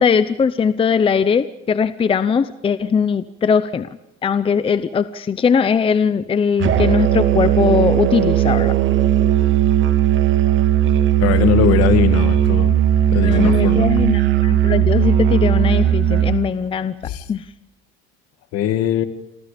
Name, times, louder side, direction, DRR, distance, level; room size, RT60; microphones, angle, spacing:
voice 1, 0.0-3.9 4.2-8.8 13.2-17.0 17.3-17.4, left 6 dB, 20° left, 13 dB, 0.7 m, -19 dB
Musical instrument, 6.6-16.5, right 11 dB, 40° right, 2.6 m, -16 dB
voice 2, 11.2-12.7 13.1-13.9 17.0-17.2 18.5-19.0, left 10 dB, 55° left, 10 dB, 2.3 m, -20 dB
28.5 x 24.5 x 5.2 m, 0.91 s
cardioid pair, 140°, 29 cm